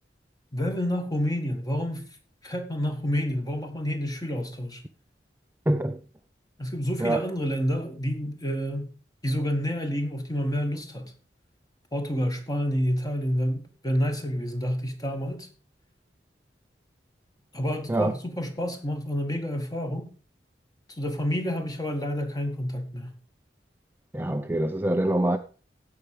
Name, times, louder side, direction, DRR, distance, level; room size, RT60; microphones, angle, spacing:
voice 1, 0.5-2.0 2.4-4.8 6.6-8.9 9.2-11.1 11.9-15.5 17.5-20.1 21.0-23.1, equal, 20° left, 1.8 m, -29 dB
voice 2, 5.7-6.0 7.0-7.3 17.9-18.1 24.1-25.4, right 1 dB, 10° right, 0.4 m, -25 dB
15.5 x 5.8 x 5.0 m
head